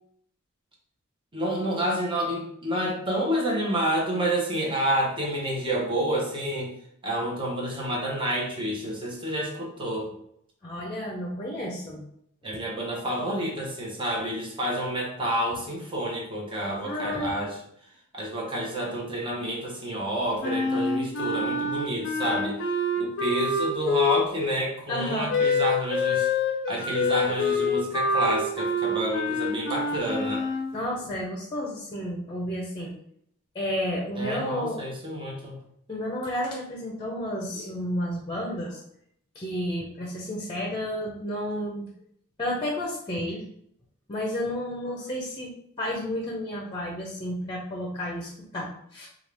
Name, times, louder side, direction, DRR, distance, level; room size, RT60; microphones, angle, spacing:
voice 1, 1.3-6.7 7.0-10.2 12.4-17.6 18.1-22.6 23.0-26.3 26.7-30.5 34.2-35.6 37.5-37.7, right 1 dB, 25° right, -2 dB, 1.1 m, -29 dB
voice 2, 10.6-12.0 16.8-17.3 24.9-25.3 30.7-32.9 33.5-34.8 35.9-38.8 39.3-41.9 42.4-43.4 44.1-45.5 45.8-49.1, left 1 dB, 20° left, -2 dB, 0.7 m, -31 dB
Wind instrument woodwind instrument, 20.4-24.6 25.3-30.7, left 3 dB, 60° left, 0.6 m, -26 dB
4.6 x 2.5 x 3.4 m, 0.70 s
head